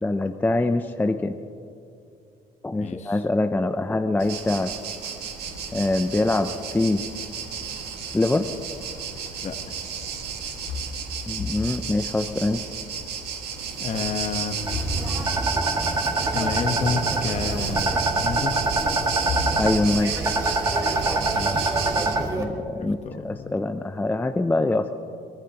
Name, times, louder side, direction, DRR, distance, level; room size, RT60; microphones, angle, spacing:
voice 1, 0.0-1.4 2.6-4.7 5.7-7.0 8.1-8.5 11.3-12.6 19.5-20.2 22.4-23.0 23.2-24.9, left 2 dB, 10° left, 7 dB, 0.5 m, -24 dB
voice 2, 2.8-3.2 9.4-9.8 13.8-14.7 16.3-18.7 21.3-21.8 22.8-23.5, left 5 dB, 45° left, 7 dB, 1.2 m, -30 dB
sound 1, 4.2-22.2, right 7 dB, 75° right, 1.9 m, -32 dB
sound 2, 5.4-21.7, left 4 dB, 85° left, 2.1 m, -39 dB
sound 3, 14.6-22.4, right 2 dB, 20° right, 1.9 m, -25 dB
24.0 x 19.0 x 2.9 m, 2.5 s
cardioid pair, 110°, 17 cm